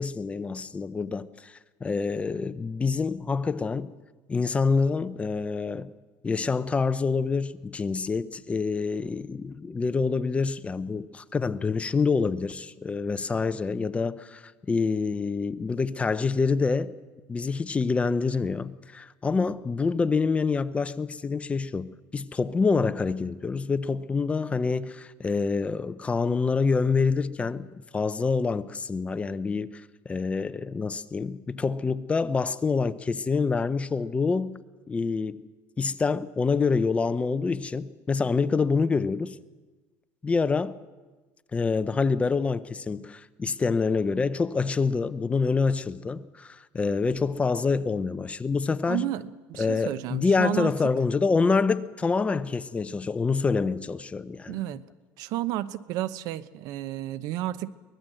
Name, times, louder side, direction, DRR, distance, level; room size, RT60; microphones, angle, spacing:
voice 1, 0.0-1.5 1.8-3.9 4.3-5.9 6.2-16.9 17.3-27.7 27.9-34.6 34.9-35.5 35.8-39.4 40.2-40.8 41.5-49.1 49.6-54.6, left 4 dB, 20° left, 0.7 m, -26 dB
voice 2, 48.9-50.7 54.5-54.9 55.2-57.7, right 14 dB, 70° right, 0.8 m, -32 dB
23.5 x 19.0 x 7.7 m
cardioid pair, 130°, 7 cm